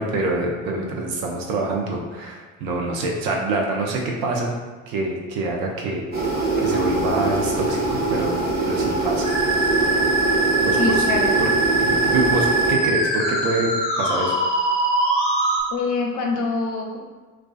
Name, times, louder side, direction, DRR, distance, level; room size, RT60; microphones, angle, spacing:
voice 1, 0.0-4.5 4.9-6.3 6.6-9.3 10.6-11.0 11.4-11.5 11.8-13.7 14.0-14.4, right 2 dB, 60° right, -1 dB, 0.6 m, -26 dB
sound 1, 6.1-12.7, right 3 dB, 25° right, 0.7 m, -23 dB
Musical instrument, 9.2-15.6, right 2 dB, 20° left, 1.0 m, -22 dB
voice 2, 10.8-11.3 15.7-17.0, left 4 dB, 50° left, 1 dB, 0.5 m, -25 dB
2.4 x 2.2 x 2.3 m, 1.3 s
figure-of-eight pair, 50°, 41 cm